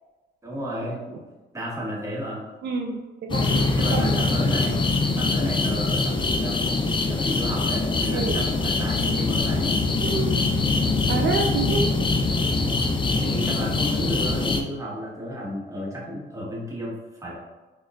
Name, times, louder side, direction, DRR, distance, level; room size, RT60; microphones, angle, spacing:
voice 1, 0.4-1.0 1.5-2.4 3.7-4.9 5.2-9.7 13.2-17.4, equal, 15° right, -5 dB, 1.1 m, -32 dB
voice 2, 2.6-4.3 8.1-8.4 10.0-10.5 11.1-11.9, right 4 dB, 60° right, 1 dB, 0.4 m, -28 dB
sound 1, 3.3-14.6, left 3 dB, 25° left, 0.4 m, -23 dB
4.4 x 2.3 x 2.3 m, 1.2 s
cardioid pair, 90°, 20 cm